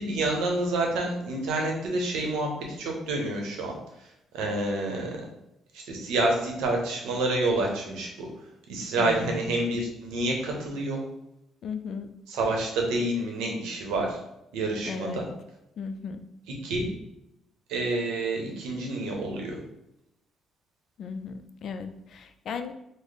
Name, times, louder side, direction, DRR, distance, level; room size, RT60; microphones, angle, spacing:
voice 1, 0.0-2.5 2.8-3.7 4.3-5.2 5.7-8.3 8.7-11.0 12.3-14.2 14.5-15.2 16.6-16.9 17.7-19.6, right 2 dB, 90° right, 1 dB, 0.8 m, -28 dB
voice 2, 9.0-9.6 11.6-12.1 14.8-15.3 15.8-16.2 21.0-22.7, left 5 dB, 60° left, 8 dB, 0.3 m, -36 dB
3.3 x 2.0 x 4.0 m, 0.84 s
cardioid pair, 95°, 0 cm